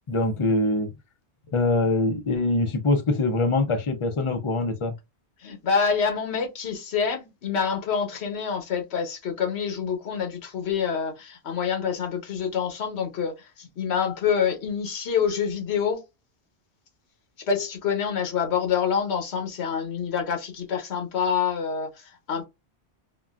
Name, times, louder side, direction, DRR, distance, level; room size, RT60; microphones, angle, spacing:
voice 1, 0.1-0.9 1.5-5.0, left 2 dB, 45° left, 0.4 m, -23 dB
voice 2, 5.4-16.0 17.5-22.5, left 6 dB, 75° left, 1.1 m, -27 dB
3.6 x 2.2 x 2.4 m
omnidirectional pair, 1.1 m